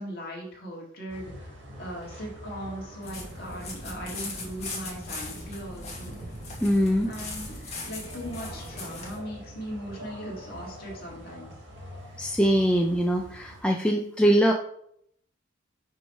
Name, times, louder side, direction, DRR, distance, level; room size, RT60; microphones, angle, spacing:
voice 1, 0.0-6.2 7.0-11.5, equal, 50° left, -2 dB, 1.9 m, -39 dB
sound 1, 1.1-13.6, equal, 70° right, 1.7 m, -45 dB
sound 2, 3.0-9.2, left 2 dB, 35° left, 1.5 m, -39 dB
voice 2, 6.6-7.1 12.2-14.5, equal, 5° left, 1 dB, 0.4 m, -22 dB
5.5 x 3.1 x 5.5 m, 0.67 s
head